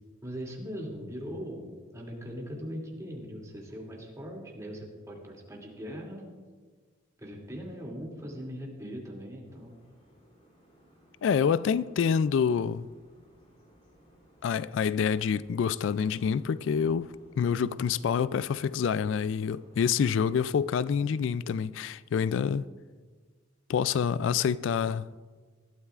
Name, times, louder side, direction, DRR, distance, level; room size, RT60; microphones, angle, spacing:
voice 1, 0.2-1.7 1.9-6.3 7.2-9.7, equal, 15° right, 2.6 m, -40 dB
sound 1, 9.4-20.5, equal, 35° left, 3.3 m, -60 dB
voice 2, 11.2-12.9 14.4-22.7 23.7-25.1, left 7 dB, 70° left, 0.3 m, -27 dB
19.5 x 13.0 x 2.4 m
head